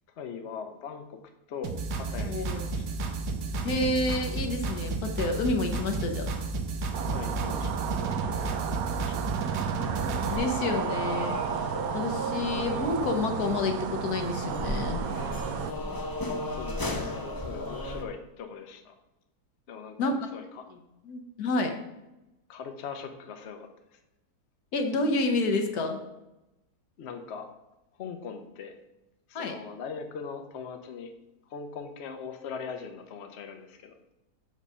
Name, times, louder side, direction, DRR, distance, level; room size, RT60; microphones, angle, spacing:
voice 1, 0.1-1.2 1.5-2.9 7.1-9.2 9.5-9.7 16.5-18.9 19.7-20.0 20.3-20.6 22.5-24.0 27.0-27.5 28.0-28.7 29.3-31.1 31.5-34.0, left 6 dB, 55° left, 6 dB, 0.8 m, -41 dB
sound 1, 1.6-10.4, right 3 dB, 90° right, 1.4 m, -32 dB
voice 2, 2.3-2.6 3.6-6.3 10.3-11.4 11.9-15.0 20.0-20.2 21.1-21.7 24.7-26.0 29.3-29.5, left 2 dB, 70° left, 5 dB, 1.4 m, -29 dB
sound 2, 6.9-15.7, right 8 dB, 70° right, 1.0 m, -33 dB
sound 3, 9.8-18.0, left 1 dB, 35° left, 0.3 m, -35 dB
6.4 x 5.3 x 5.4 m, 0.96 s
omnidirectional pair, 1.7 m